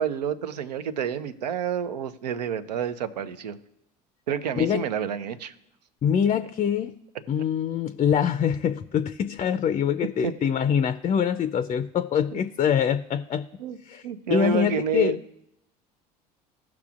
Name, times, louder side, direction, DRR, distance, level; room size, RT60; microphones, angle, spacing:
voice 1, 0.0-3.6 4.3-5.5 10.2-10.3 13.6-13.8 14.0-15.2, right 8 dB, 85° right, 11 dB, 0.6 m, -29 dB
voice 2, 6.0-6.9 7.3-13.5 13.9-14.0 14.3-15.2, left 8 dB, 35° left, 11 dB, 0.4 m, -24 dB
17.0 x 5.9 x 2.4 m, 0.83 s
hypercardioid pair, 70°, 21 cm